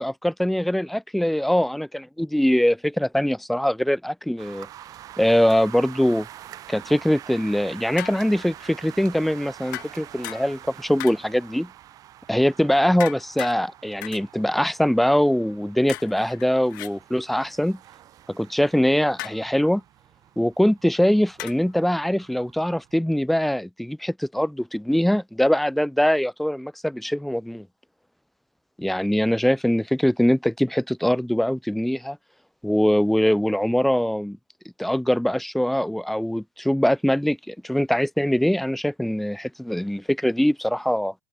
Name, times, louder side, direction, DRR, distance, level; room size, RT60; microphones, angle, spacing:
voice 1, 0.0-1.9 2.2-4.7 5.2-6.3 6.7-11.7 12.3-17.8 18.3-19.8 20.4-27.7 28.8-32.2 32.6-34.4 34.8-41.1, equal, ahead, 0.5 m, -22 dB
sound 1, 4.4-23.0, right 12 dB, 35° right, 2.4 m, -46 dB
sound 2, 8.0-8.5 9.7-10.7 11.0-11.5 13.0-13.6 14.0-14.3 15.9-16.9 19.2-19.5 21.4-21.8, left 20 dB, 70° left, 0.8 m, -37 dB
open air
supercardioid pair, 135°, 11 cm